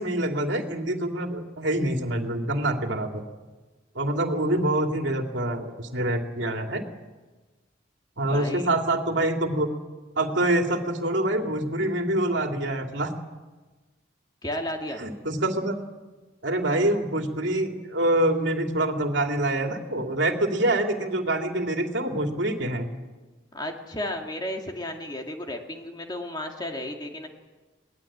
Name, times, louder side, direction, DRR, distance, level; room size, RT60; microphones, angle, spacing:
voice 1, 0.0-3.2 3.9-6.8 8.2-9.7 10.1-13.1 15.0-15.8 16.4-22.9, right 1 dB, 65° right, 3 dB, 2.6 m, -26 dB
voice 2, 8.3-8.7 14.4-15.0 23.5-27.3, left 1 dB, 20° left, 2 dB, 2.4 m, -33 dB
22.5 x 19.0 x 8.7 m, 1.2 s
head